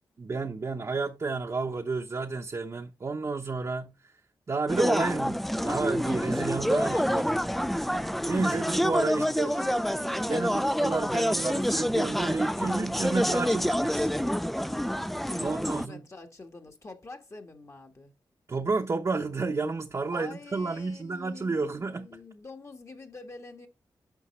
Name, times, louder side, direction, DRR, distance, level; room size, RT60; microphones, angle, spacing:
voice 1, 0.2-3.9 4.5-7.3 8.3-9.5 10.3-14.1 15.4-16.0 18.5-22.1, right 3 dB, 40° right, 0.8 m, -31 dB
sound 1, 4.7-15.9, equal, ahead, 0.3 m, -27 dB
voice 2, 9.1-10.6 15.1-18.1 20.1-23.7, left 3 dB, 35° left, 1.5 m, -46 dB
9.9 x 6.1 x 3.2 m
wide cardioid pair, 110°, 8 cm